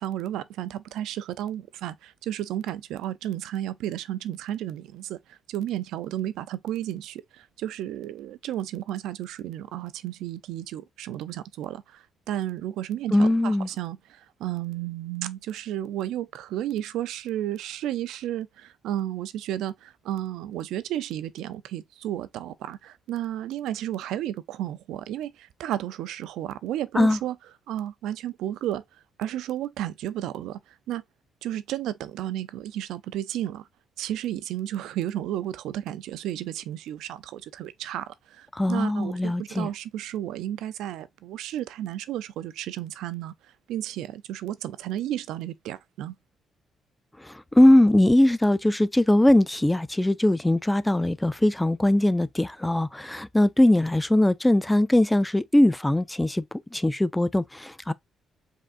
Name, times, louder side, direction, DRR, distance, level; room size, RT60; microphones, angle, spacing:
voice 1, 0.0-27.4 27.7-28.8 29.2-31.0 31.4-33.7 34.0-43.3 43.7-46.1, right 12 dB, 85° right, 0.5 m, -33 dB
voice 2, 13.1-13.7 26.9-27.2 38.5-39.7 47.2-57.9, left 1 dB, 10° left, 0.4 m, -21 dB
5.0 x 3.7 x 2.5 m
cardioid pair, 90°, 0 cm